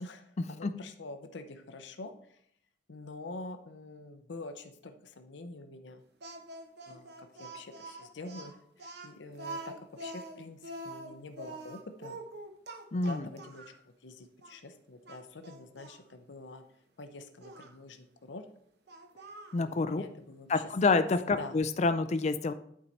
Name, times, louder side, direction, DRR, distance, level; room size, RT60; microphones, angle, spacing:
voice 1, 0.0-2.4 2.9-6.0 6.9-9.7 10.0-12.2 13.0-13.6 14.0-16.6 17.0-18.5 19.6-20.7 21.4-21.6, left 2 dB, 75° left, 8 dB, 0.6 m, -46 dB
Speech, 6.2-13.8 14.4-14.5 15.0-16.0 17.4-17.7 18.9-19.6, right 2 dB, 60° right, 0.9 m, -45 dB
voice 2, 12.9-13.3 19.5-20.0 20.5-22.5, left 3 dB, 40° left, 11 dB, 0.4 m, -28 dB
8.7 x 4.6 x 4.0 m, 0.66 s
head